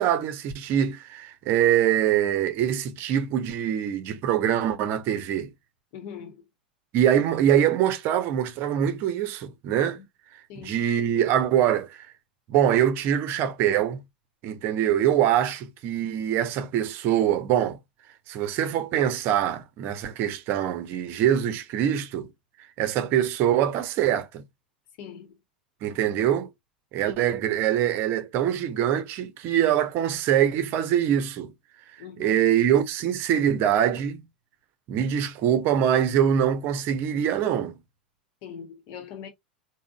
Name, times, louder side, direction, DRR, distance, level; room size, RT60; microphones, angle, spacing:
voice 1, 0.0-5.5 6.9-10.0 10.6-12.1 12.5-14.0 14.4-17.8 18.3-22.3 22.8-24.4 25.8-26.5 26.9-31.5 32.2-34.2 34.9-37.8, right 10 dB, 45° right, 0.6 m, -24 dB
voice 2, 5.9-6.4 10.0-10.1 10.5-10.8 25.0-25.4 32.0-32.4 38.4-39.3, left 8 dB, 50° left, 0.9 m, -41 dB
3.7 x 2.1 x 2.2 m
figure-of-eight pair, 85°, 5 cm